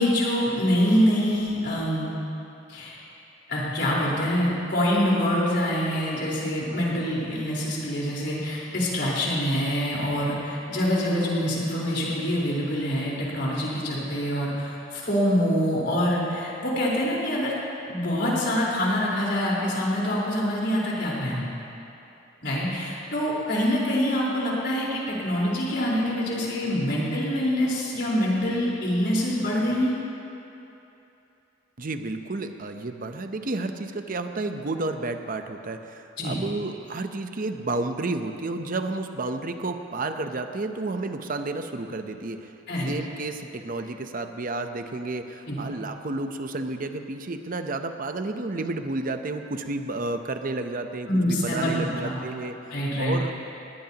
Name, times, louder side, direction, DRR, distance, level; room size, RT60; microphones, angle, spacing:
voice 1, 0.0-2.2 2.7-3.0 3.5-17.5 17.9-21.4 22.4-30.0 36.2-36.4 42.7-42.9 45.5-45.6 51.1-51.7 52.0-52.1 52.7-53.2, equal, 60° left, -6 dB, 4.2 m, -25 dB
voice 2, 31.8-42.5 42.8-52.6 53.0-53.3, right 2 dB, 45° right, 7 dB, 0.8 m, -31 dB
21.0 x 18.5 x 2.9 m, 2.9 s
head